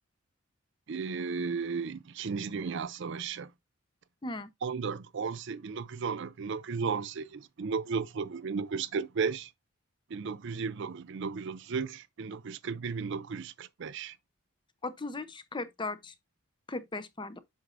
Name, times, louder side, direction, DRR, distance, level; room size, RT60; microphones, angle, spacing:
voice 1, 0.9-3.5 4.6-9.5 10.1-14.2, right 5 dB, 55° right, 0.4 m, -34 dB
voice 2, 14.8-16.1 16.7-17.4, left 2 dB, 20° left, 0.7 m, -37 dB
7.8 x 6.3 x 2.5 m
head